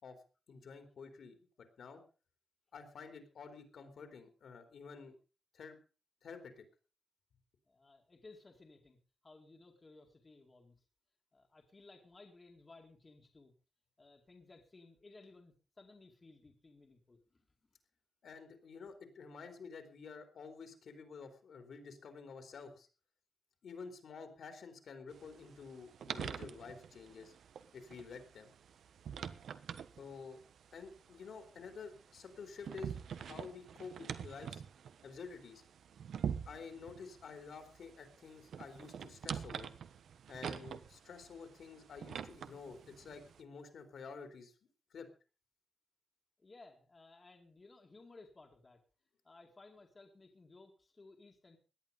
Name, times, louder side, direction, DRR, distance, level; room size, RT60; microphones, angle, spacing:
voice 1, 0.5-1.5 1.8-2.0 2.7-5.2 5.5-5.8 6.2-6.6 18.2-22.9 23.6-27.3 27.7-28.5 30.0-30.4 30.7-34.6 35.0-35.6 36.5-39.7 40.3-44.5 44.9-45.1, left 5 dB, 60° left, 7 dB, 3.3 m, -50 dB
voice 2, 7.7-10.8 11.3-13.5 14.0-17.5 46.4-48.8 49.2-51.6, left 3 dB, 25° left, 2 dB, 2.2 m, -59 dB
sound 1, 25.1-43.4, right 8 dB, 75° right, 1.2 m, -46 dB
18.0 x 11.0 x 5.3 m, 0.35 s
wide cardioid pair, 180°, 0 cm